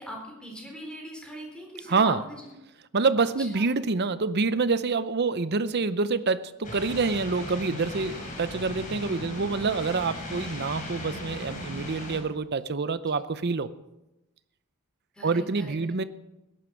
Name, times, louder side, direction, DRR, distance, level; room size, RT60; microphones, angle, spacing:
voice 1, 0.0-2.5 3.2-3.7 15.1-15.8, equal, 5° left, 0 dB, 4.0 m, -41 dB
voice 2, 1.9-2.2 2.9-13.7 15.2-16.0, right 4 dB, 50° right, 13 dB, 0.7 m, -27 dB
sound 1, 6.6-12.2, left 1 dB, 40° left, 3.8 m, -37 dB
17.0 x 11.0 x 6.3 m, 0.97 s
head